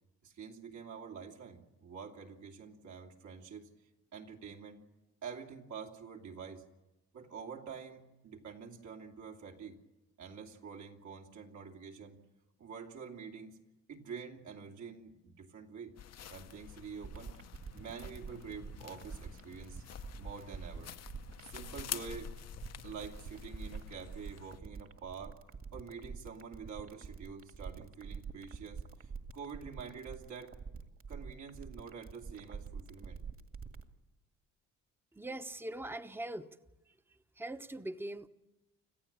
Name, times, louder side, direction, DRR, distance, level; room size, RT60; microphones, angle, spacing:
voice 1, 0.2-3.7 4.1-4.8 5.2-6.6 7.1-9.8 10.2-12.2 12.6-13.6 13.9-15.9 16.3-17.3 17.7-19.8 20.2-20.9 21.4-22.3 22.8-25.4 25.7-30.5 31.1-33.2, right 6 dB, 70° right, 2 dB, 2.8 m, -47 dB
sound 1, 16.0-24.6, left 10 dB, 55° left, 0.8 m, -48 dB
sound 2, 17.0-33.8, right 5 dB, 45° right, 2.1 m, -46 dB
voice 2, 35.1-36.6 36.9-38.3, right 1 dB, 5° right, 10 dB, 0.9 m, -42 dB
26.0 x 15.0 x 8.7 m, 1.0 s
cardioid pair, 90°, 30 cm